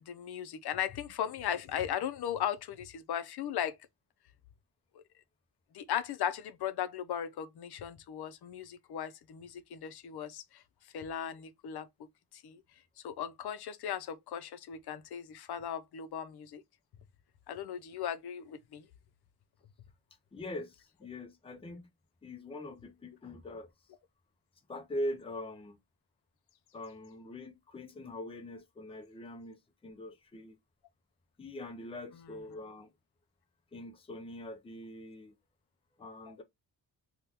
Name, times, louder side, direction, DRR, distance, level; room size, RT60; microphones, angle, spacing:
voice 1, 0.0-3.8 4.9-5.0 5.7-10.6 10.9-11.9 12.3-12.6 13.0-16.6 17.5-18.9 36.3-36.4, left 9 dB, 70° left, 0.6 m, -37 dB
voice 2, 20.3-21.9 22.2-23.7 24.7-25.8 26.7-30.6 31.4-32.9 33.7-35.4 36.0-36.4, left 1 dB, 15° left, 0.5 m, -42 dB
3.5 x 2.3 x 2.8 m
wide cardioid pair, 175°, 40 cm